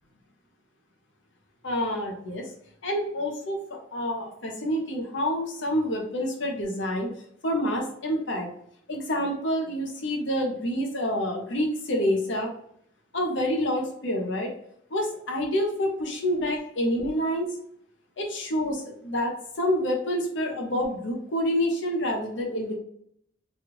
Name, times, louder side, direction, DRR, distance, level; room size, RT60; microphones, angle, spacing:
voice 1, 1.6-2.5 2.8-3.6 3.9-7.1 7.4-8.5 8.9-12.5 13.1-14.5 14.9-17.5 18.2-19.3 19.6-22.8, equal, 65° left, 1 dB, 0.8 m, -27 dB
3.2 x 2.4 x 3.0 m, 0.69 s
head